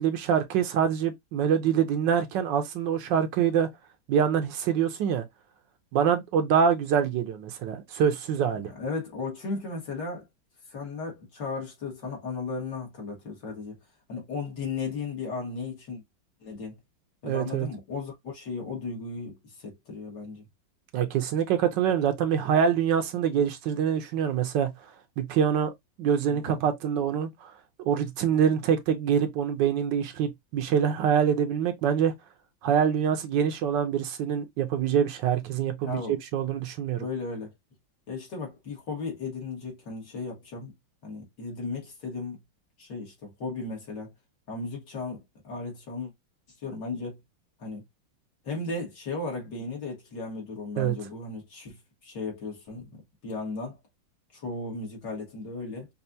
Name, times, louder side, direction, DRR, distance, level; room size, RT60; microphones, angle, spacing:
voice 1, 0.0-3.7 4.1-5.2 5.9-8.7 17.2-17.7 20.9-24.7 25.2-25.7 26.0-27.5 27.8-32.1 32.6-36.0 36.3-37.0 50.8-50.9, right 8 dB, 70° right, 1.3 m, -25 dB
voice 2, 8.5-10.3 10.7-13.8 14.1-16.0 16.4-16.8 17.2-20.5 26.3-26.6 35.8-36.2 37.0-37.5 38.1-40.7 41.0-42.4 42.8-44.1 44.5-46.1 46.6-47.2 47.6-47.8 48.4-53.8 54.3-55.9, left 3 dB, 65° left, 2.5 m, -35 dB
5.5 x 2.5 x 2.6 m
omnidirectional pair, 2.1 m